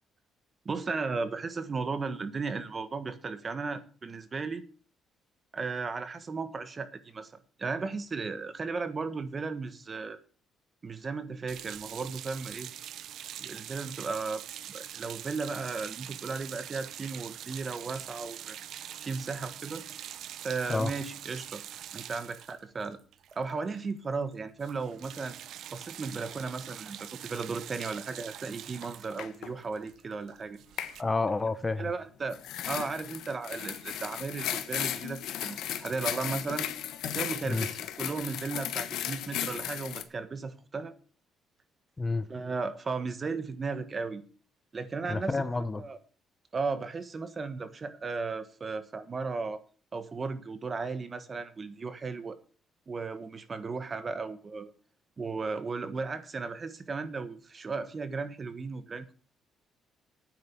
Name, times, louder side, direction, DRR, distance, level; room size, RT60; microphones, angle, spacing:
voice 1, 0.6-4.6 5.5-7.3 7.6-10.2 10.8-12.7 13.2-18.6 19.0-19.8 20.4-21.6 21.9-23.0 23.3-25.4 25.7-30.6 31.8-32.4 32.6-36.7 37.0-40.9 42.3-44.2 44.7-46.0 46.5-49.6 49.9-52.4 52.9-54.7 55.2-59.1, right 4 dB, 30° right, 1.5 m, -35 dB
sound 1, 11.5-23.9 24.1-24.3 24.6-31.0, right 11 dB, 70° right, 0.6 m, -44 dB
sound 2, 28.8-28.9 29.2-29.5 30.8-31.0 32.3-40.0, left 11 dB, 80° left, 1.4 m, -35 dB
voice 2, 31.0-31.9 37.4-37.7 42.0-42.3 45.1-45.8, left 3 dB, 20° left, 0.8 m, -29 dB
9.5 x 7.9 x 8.5 m
cardioid pair, 115°, 0 cm